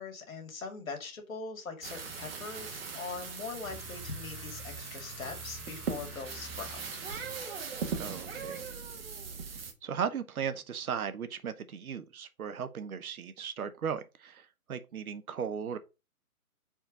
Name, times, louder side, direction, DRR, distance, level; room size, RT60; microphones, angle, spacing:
voice 1, 0.0-7.0, left 4 dB, 65° left, 2.4 m, -42 dB
sound 1, 1.8-9.7, right 5 dB, 40° right, 1.4 m, -40 dB
sound 2, 3.6-7.6, equal, ahead, 0.7 m, -48 dB
voice 2, 8.0-8.6 9.8-15.8, right 7 dB, 70° right, 1.0 m, -36 dB
4.7 x 4.4 x 5.0 m
hypercardioid pair, 165°, 44 cm